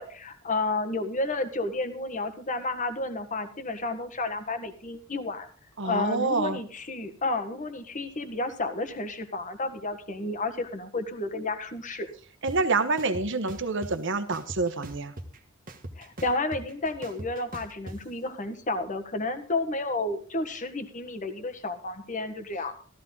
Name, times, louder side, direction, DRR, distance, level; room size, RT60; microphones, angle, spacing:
voice 1, 0.0-5.5 5.8-12.1 16.0-22.7, left 2 dB, 40° left, 8 dB, 1.6 m, -31 dB
voice 2, 5.8-6.6 12.4-15.1, right 3 dB, 60° right, 11 dB, 1.2 m, -27 dB
sound 1, 12.5-12.6 13.0-13.9 14.3-15.4 15.7-18.0, right 1 dB, 40° right, 1.5 m, -40 dB
15.0 x 13.5 x 4.0 m, 0.42 s
head